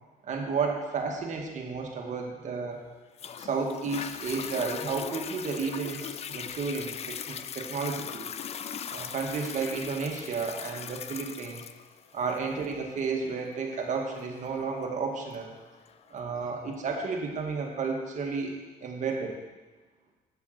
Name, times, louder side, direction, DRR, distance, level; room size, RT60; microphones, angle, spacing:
voice 1, 0.2-2.8 3.4-8.3 8.9-11.7 12.1-15.5 16.1-19.4, right 4 dB, 45° right, 1 dB, 1.9 m, -32 dB
Toilet flush, 3.2-16.2 16.8-16.9, left 8 dB, 40° left, 0.4 m, -40 dB
8.6 x 7.0 x 6.7 m, 1.2 s
cardioid pair, 110°, 17 cm